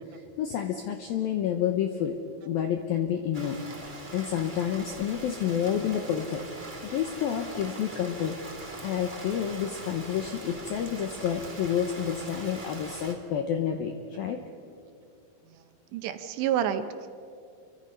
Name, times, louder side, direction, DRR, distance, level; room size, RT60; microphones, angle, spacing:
voice 1, 0.1-2.2 2.4-3.6 4.1-6.4 6.9-8.4 8.8-14.4, left 9 dB, 80° left, 5 dB, 2.1 m, -29 dB
Rain, 3.3-13.1, right 2 dB, 20° right, 1.2 m, -42 dB
voice 2, 15.9-17.1, right 10 dB, 75° right, 9 dB, 2.8 m, -29 dB
28.0 x 24.0 x 5.6 m, 2.4 s
omnidirectional pair, 5.6 m